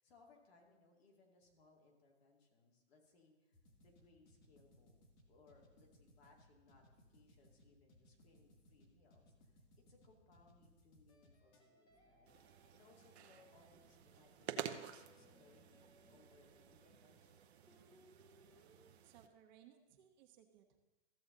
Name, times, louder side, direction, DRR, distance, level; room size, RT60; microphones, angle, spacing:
voice 1, 0.0-17.4, left 3 dB, 60° left, 0 dB, 2.5 m, -69 dB
sound 1, 3.5-11.6, left 1 dB, 40° left, 1.8 m, -67 dB
sound 2, 8.8-9.0 11.1-18.9, equal, 15° left, 1.0 m, -70 dB
sound 3, 12.3-19.3, right 9 dB, 65° right, 0.9 m, -51 dB
voice 2, 19.0-20.8, right 10 dB, 40° right, 4 dB, 1.3 m, -64 dB
15.0 x 7.0 x 3.9 m, 1.2 s
hypercardioid pair, 145°, 34 cm